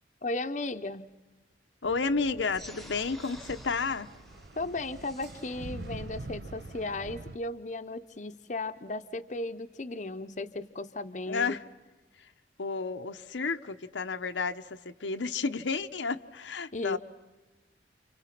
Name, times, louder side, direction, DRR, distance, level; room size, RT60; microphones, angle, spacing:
voice 1, 0.2-1.1 4.6-11.6 16.7-17.0, left 2 dB, 40° left, 0.8 m, -35 dB
voice 2, 1.8-4.1 11.3-11.6 12.2-12.3 12.6-17.0, left 4 dB, 80° left, 0.9 m, -31 dB
sound 1, 1.8-7.4, right 2 dB, 65° right, 0.8 m, -45 dB
sound 2, 2.5-7.5, equal, ahead, 1.1 m, -53 dB
29.0 x 29.0 x 6.0 m
head